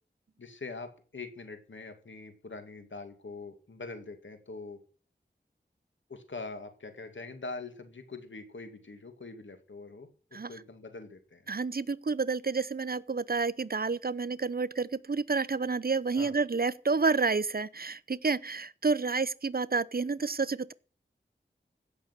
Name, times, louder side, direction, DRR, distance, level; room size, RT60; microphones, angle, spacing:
voice 1, 0.4-4.8 6.1-11.4 16.1-16.3, left 3 dB, 85° left, 2.4 m, -43 dB
voice 2, 11.5-20.7, right 4 dB, 50° right, 0.8 m, -29 dB
16.5 x 6.7 x 8.3 m
wide cardioid pair, 40°, 19 cm